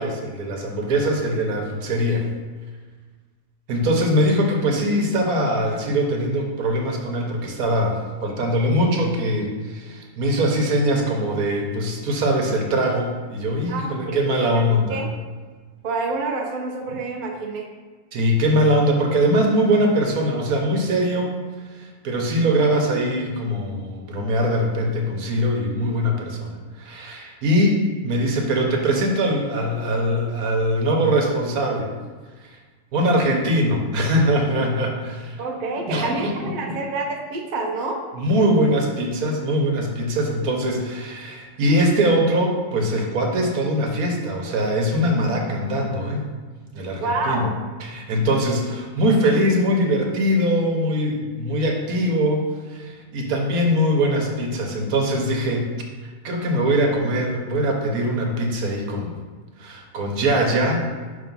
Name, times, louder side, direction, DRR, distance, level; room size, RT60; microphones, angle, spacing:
voice 1, 0.0-2.2 3.7-15.0 18.1-21.4 21.7-31.9 32.9-35.4 35.9-36.8 38.1-46.2 46.7-47.5 47.8-52.4 52.7-55.7 56.0-59.1 59.6-60.8, equal, 80° right, 1 dB, 1.4 m, -22 dB
voice 2, 13.7-14.5 14.9-15.1 15.8-17.7 35.4-38.0 46.9-47.5, right 3 dB, 45° right, 0 dB, 0.7 m, -28 dB
5.7 x 3.4 x 5.3 m, 1.4 s
omnidirectional pair, 1.5 m